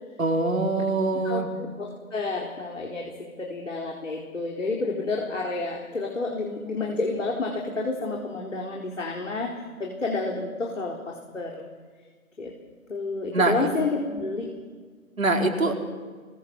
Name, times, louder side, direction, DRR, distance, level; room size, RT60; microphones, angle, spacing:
voice 1, 0.2-1.5 13.3-13.7 15.2-15.7, right 2 dB, 65° right, 3 dB, 4.6 m, -23 dB
voice 2, 1.2-3.1 3.4-9.5 9.8-11.7 12.4-12.5 12.9-14.5, left 3 dB, 55° left, -1 dB, 4.6 m, -30 dB
28.5 x 23.0 x 6.6 m, 1.5 s
figure-of-eight pair, 150°, 44 cm